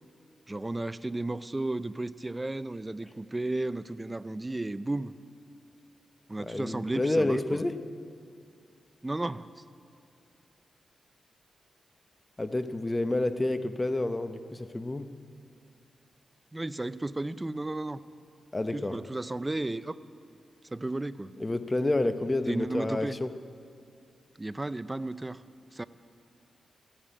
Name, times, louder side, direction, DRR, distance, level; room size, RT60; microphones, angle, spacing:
voice 1, 0.5-5.2 6.3-7.6 9.0-9.5 16.5-18.0 18.7-20.0 20.7-21.3 22.5-23.2 24.4-25.4 25.7-25.8, right 2 dB, 20° right, 14 dB, 0.5 m, -33 dB
voice 2, 6.4-7.7 12.4-15.1 18.5-19.0 21.4-23.3, left 2 dB, 20° left, 10 dB, 0.8 m, -29 dB
15.0 x 10.0 x 9.1 m, 2.4 s
cardioid pair, 80°, 0 cm